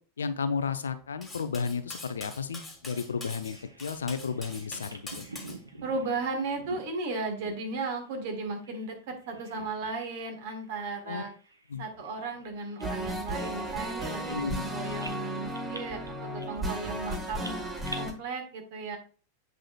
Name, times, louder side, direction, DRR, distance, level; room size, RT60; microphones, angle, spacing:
voice 1, 0.2-5.3 11.1-11.2 11.7-11.8 14.3-14.6, left 5 dB, 70° left, 10 dB, 0.5 m, -33 dB
Cutlery silverware, 1.2-5.6, left 2 dB, 10° left, 1.6 m, -44 dB
Bird vocalization bird call bird song, 3.0-8.9 9.2-10.1 10.4-10.6 11.2-14.7 15.0-18.0, right 2 dB, 80° right, 0.8 m, -47 dB
voice 2, 5.8-11.3 11.8-17.6 17.9-19.0, right 3 dB, 50° right, 3 dB, 1.6 m, -35 dB
sound 1, 12.8-18.1, right 1 dB, 10° right, 1.2 m, -35 dB
8.0 x 4.9 x 2.4 m, 0.38 s
figure-of-eight pair, 90°, 0 cm